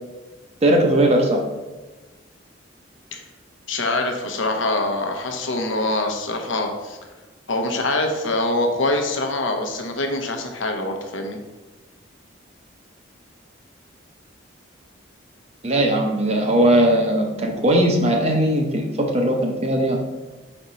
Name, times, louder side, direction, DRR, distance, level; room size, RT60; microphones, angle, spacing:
voice 1, 0.6-1.4 15.6-20.0, right 1 dB, 30° right, 2 dB, 0.8 m, -19 dB
voice 2, 3.7-7.0 7.5-11.4, left 2 dB, 75° left, 4 dB, 0.9 m, -24 dB
4.3 x 4.2 x 5.1 m, 1.2 s
head